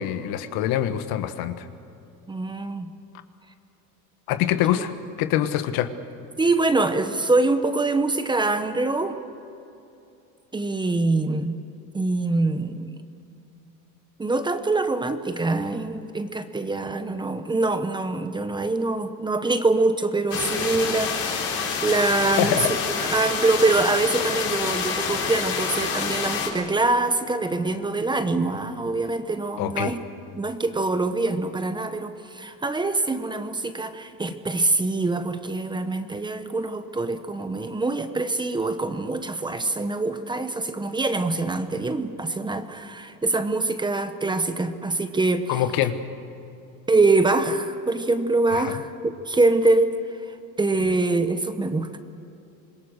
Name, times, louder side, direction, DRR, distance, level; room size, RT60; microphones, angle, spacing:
voice 1, 0.0-1.6 4.3-4.9 5.2-5.9 22.4-22.7 29.6-29.9 45.5-46.0 48.5-48.7, left 11 dB, 70° left, 10 dB, 1.5 m, -24 dB
voice 2, 2.3-2.9 4.8-4.9 6.4-9.2 10.5-11.6 11.9-13.0 14.2-21.5 21.8-22.7 23.0-30.0 30.3-45.6 46.9-50.0 50.6-52.0, right 2 dB, 10° right, 9 dB, 1.0 m, -24 dB
sound 1, 20.3-26.5, left 5 dB, 40° left, 4.2 m, -27 dB
26.5 x 21.5 x 6.5 m, 2.8 s
cardioid pair, 145°, 38 cm